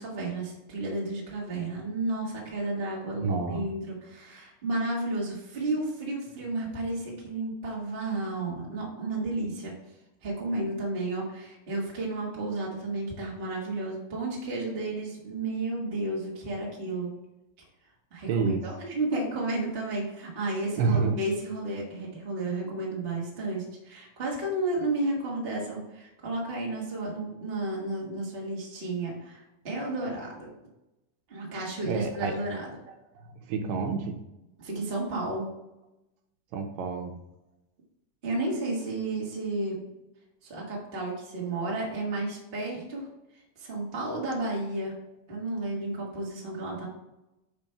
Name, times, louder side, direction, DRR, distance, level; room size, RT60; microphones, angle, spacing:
voice 1, 0.0-9.7 10.2-17.1 18.1-30.5 31.3-32.7 34.6-35.5 38.2-39.8 40.4-43.1 43.6-44.9 45.3-46.9, right 2 dB, 45° right, -4 dB, 0.7 m, -32 dB
voice 2, 3.2-3.6 18.3-18.6 20.8-21.2 31.8-32.3 32.9-34.2 36.5-37.1, right 5 dB, 75° right, 4 dB, 2.2 m, -29 dB
5.3 x 5.1 x 4.5 m, 0.94 s
omnidirectional pair, 4.1 m